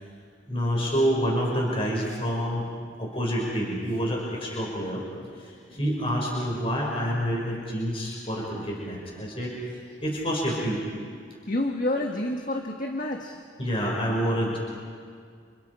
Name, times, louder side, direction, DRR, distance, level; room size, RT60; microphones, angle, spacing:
voice 1, 0.5-2.6 3.0-5.0 5.4-9.5 10.0-10.8 13.6-14.6, equal, 30° left, -3 dB, 6.0 m, -27 dB
voice 2, 11.5-13.4, left 1 dB, 45° left, 3 dB, 1.5 m, -28 dB
30.0 x 29.0 x 4.9 m, 2.1 s
head